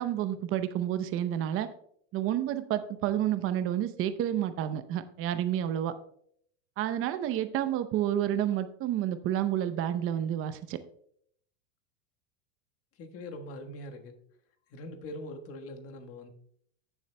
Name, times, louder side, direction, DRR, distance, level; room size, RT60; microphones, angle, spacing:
voice 1, 0.0-1.7 2.1-5.9 6.8-10.8, right 11 dB, 35° right, 11 dB, 0.7 m, -30 dB
voice 2, 12.9-14.1 14.7-16.3, left 1 dB, 40° left, 4 dB, 1.4 m, -42 dB
14.5 x 7.2 x 2.2 m, 0.66 s
supercardioid pair, 130°, 37 cm